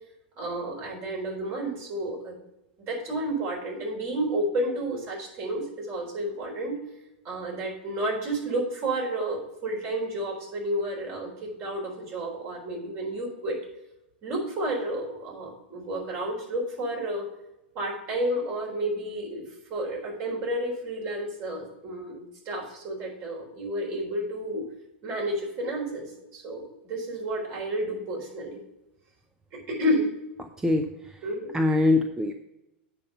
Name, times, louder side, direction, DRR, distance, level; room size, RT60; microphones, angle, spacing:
voice 1, 0.4-2.4 2.9-6.8 7.2-13.6 14.2-17.3 17.7-19.4 19.7-24.6 25.0-28.6 29.5-30.1 31.2-31.5, right 1 dB, 45° right, -1 dB, 4.0 m, -31 dB
voice 2, 30.4-31.3 31.5-32.3, left 2 dB, 10° right, 6 dB, 0.6 m, -24 dB
8.4 x 5.5 x 6.8 m, 0.91 s
hypercardioid pair, 100°, 6 cm